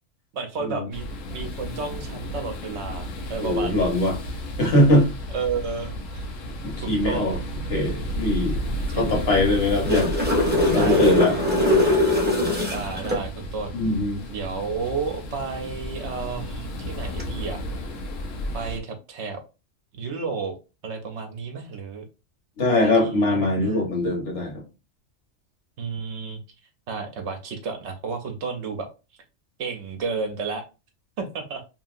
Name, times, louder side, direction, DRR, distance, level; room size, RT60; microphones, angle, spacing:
voice 1, 0.3-1.0 1.3-4.0 5.3-6.3 6.6-7.4 8.9-9.1 10.7-11.4 12.7-13.8 14.3-17.6 18.5-19.4 19.9-20.6 20.8-22.0 22.7-23.9 25.8-26.4 26.9-28.9 29.6-30.6 31.2-31.6, right 4 dB, 70° right, 5 dB, 0.8 m, -32 dB
sound 1, 0.9-18.8, equal, 85° left, 1.0 m, -33 dB
voice 2, 3.4-4.2 4.6-5.1 6.6-7.4 7.7-8.6 9.0-10.1 10.7-11.3 13.7-14.2 22.6-24.6, left 1 dB, 55° left, 0 dB, 1.2 m, -21 dB
sound 2, 9.6-13.2 17.0-17.2, left 1 dB, 10° right, 0.6 m, -21 dB
2.8 x 2.6 x 2.4 m, 0.29 s
omnidirectional pair, 1.3 m